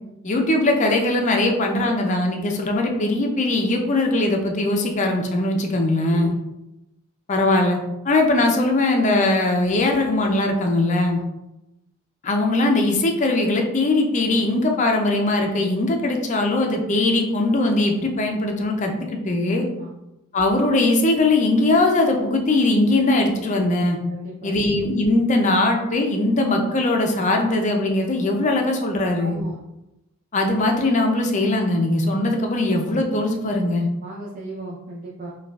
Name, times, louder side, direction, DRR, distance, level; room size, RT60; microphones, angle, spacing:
voice 1, 0.2-6.3 7.3-7.8 8.0-11.2 12.2-19.7 20.3-24.0 24.4-29.4 30.3-33.9, left 2 dB, 35° left, 3 dB, 0.5 m, -20 dB
voice 2, 6.1-6.5 19.6-19.9 24.1-24.6 29.2-29.6 34.0-35.3, right 2 dB, 35° right, -5 dB, 0.5 m, -36 dB
4.8 x 2.3 x 2.3 m, 0.93 s
head